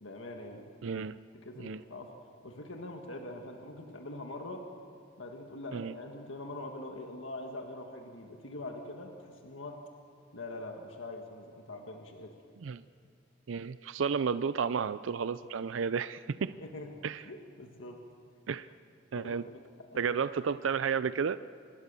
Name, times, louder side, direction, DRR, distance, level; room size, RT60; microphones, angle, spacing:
voice 1, 0.0-0.7 1.3-2.1 2.4-4.7 5.2-9.8 10.3-12.3 16.6-18.0 19.1-20.2, left 2 dB, 80° left, 3 dB, 1.7 m, -43 dB
voice 2, 0.8-1.2 1.6-1.8 5.7-5.9 12.6-12.8 13.5-16.5 17.0-17.2 18.5-18.7 19.1-19.4 20.0-21.4, right 6 dB, 75° right, 14 dB, 0.5 m, -32 dB
26.0 x 21.0 x 6.9 m, 2.4 s
head